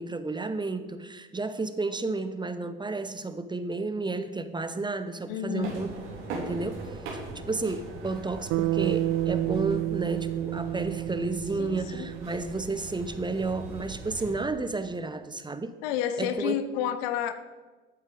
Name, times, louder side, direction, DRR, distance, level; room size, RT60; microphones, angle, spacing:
voice 1, 0.0-5.9 6.3-7.0 7.3-15.7 16.2-16.5, right 3 dB, 15° right, 11 dB, 0.9 m, -32 dB
voice 2, 5.3-5.8 11.6-12.1 15.8-17.3, left 10 dB, 65° left, 11 dB, 0.9 m, -30 dB
sound 1, 5.6-14.4, right 2 dB, 75° right, 3.7 m, -41 dB
Bass guitar, 8.5-12.9, right 14 dB, 50° right, 0.5 m, -30 dB
13.0 x 8.9 x 4.9 m, 1.3 s
hypercardioid pair, 60°, 31 cm